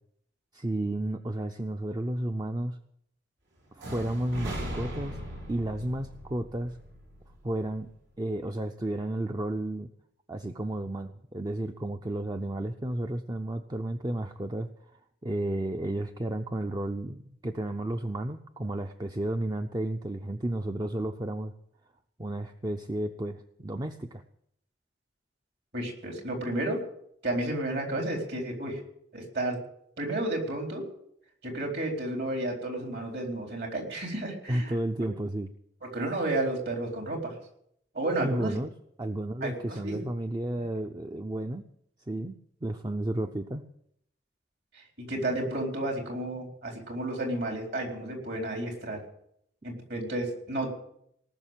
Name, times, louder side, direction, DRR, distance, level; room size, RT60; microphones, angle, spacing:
voice 1, 0.5-2.8 3.7-5.2 5.5-6.8 7.4-7.9 8.2-9.9 10.3-21.5 22.2-24.2 34.5-35.5 38.2-38.7 39.0-41.6 42.1-43.7, right 1 dB, 25° right, 6 dB, 0.6 m, -32 dB
sound 1, 3.8-7.7, equal, 80° right, 4.0 m, -39 dB
voice 2, 25.7-26.8 27.2-28.8 29.1-29.6 30.0-30.8 31.4-34.7 35.9-37.3 37.9-38.5 39.4-40.0 44.7-49.0 49.6-50.7, right 1 dB, 65° right, 1 dB, 4.1 m, -32 dB
18.5 x 6.5 x 9.1 m, 0.72 s
head